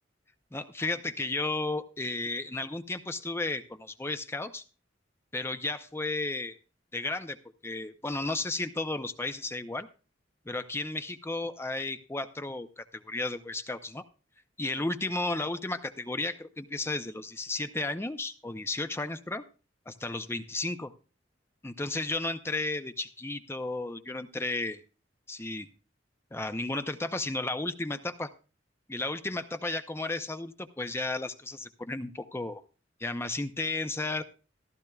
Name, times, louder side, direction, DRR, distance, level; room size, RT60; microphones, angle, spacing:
voice 1, 0.5-4.6 5.3-6.6 6.9-7.4 7.6-9.9 10.5-14.0 14.6-19.4 19.9-20.9 21.6-24.8 25.3-25.7 26.3-28.3 28.9-32.6 33.0-34.2, left 2 dB, 15° left, 9 dB, 0.6 m, -33 dB
15.0 x 13.5 x 2.3 m, 0.34 s
head